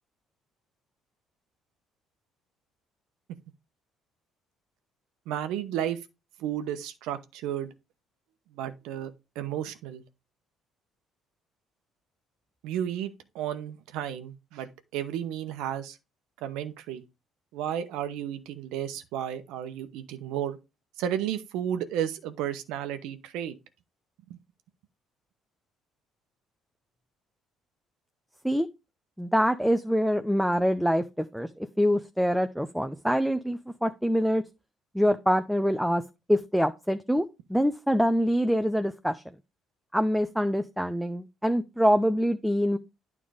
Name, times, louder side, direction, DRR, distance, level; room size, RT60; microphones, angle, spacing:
voice 1, 5.3-6.0 6.4-7.7 8.6-9.1 9.4-10.0 12.6-16.0 16.4-17.0 17.5-20.6 21.0-23.5 24.3-24.4, right 10 dB, 75° right, 0.9 m, -33 dB
voice 2, 29.2-31.5 31.8-34.4 34.9-36.0 36.3-37.2 37.5-39.2 39.9-42.8, equal, ahead, 0.6 m, -25 dB
9.4 x 3.6 x 5.0 m
supercardioid pair, 65°, 0 cm